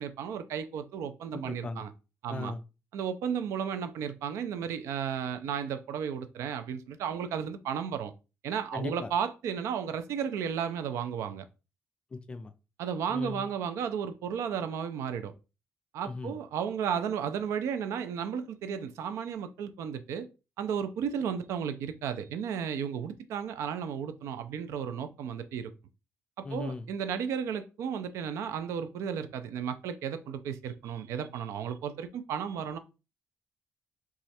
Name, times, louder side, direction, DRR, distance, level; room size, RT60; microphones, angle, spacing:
voice 1, 0.0-1.9 2.2-2.5 2.9-8.1 8.4-11.4 12.8-15.3 15.9-20.3 20.6-25.7 26.5-32.8, right 7 dB, 85° right, 0.4 m, -34 dB
voice 2, 1.3-1.8 2.3-2.6 8.7-9.1 12.1-12.5 13.1-13.4 16.1-16.4 26.4-26.9, left 3 dB, 20° left, 0.3 m, -38 dB
3.1 x 2.4 x 4.2 m
cardioid pair, 165°, 5 cm